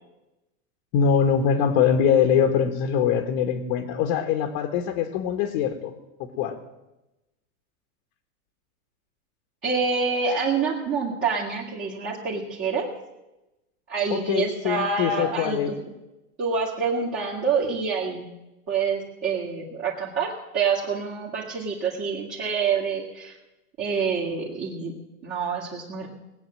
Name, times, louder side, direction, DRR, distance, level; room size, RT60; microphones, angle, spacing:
voice 1, 0.9-5.9 6.2-6.6 14.1-15.7, left 7 dB, 40° left, 5 dB, 1.4 m, -23 dB
voice 2, 9.6-12.9 13.9-15.8 16.4-18.2 18.7-20.3 20.5-23.3 23.8-24.9 25.2-26.1, right 5 dB, 30° right, -5 dB, 2.2 m, -27 dB
19.5 x 8.5 x 7.6 m, 0.99 s
supercardioid pair, 155°, 44 cm